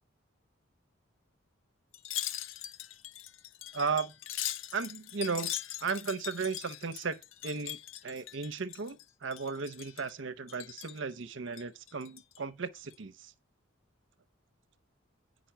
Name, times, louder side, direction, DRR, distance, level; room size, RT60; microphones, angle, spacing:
Wind chime, 1.9-9.0 9.3-10.1 10.5-11.0 11.5-12.4 12.8-12.9, left 13 dB, 70° left, 0.6 m, -41 dB
voice 1, 3.7-4.1 4.7-5.5 5.8-13.3, right 5 dB, 65° right, 0.7 m, -35 dB
9.1 x 5.2 x 5.6 m
head